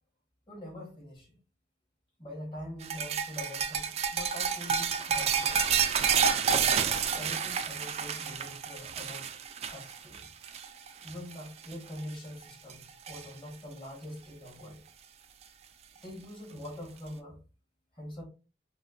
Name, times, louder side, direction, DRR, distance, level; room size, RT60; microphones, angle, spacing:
voice 1, 0.5-1.3 2.2-5.9 7.1-9.3 9.7-10.3 11.0-14.8 16.0-17.4 17.9-18.2, left 1 dB, 30° left, 1.3 m, -44 dB
sound 1, 2.8-11.3 11.6-12.0 12.4-13.3 14.6-14.7 16.0-16.1, right 7 dB, 35° right, 0.3 m, -29 dB
4.1 x 2.1 x 2.5 m
head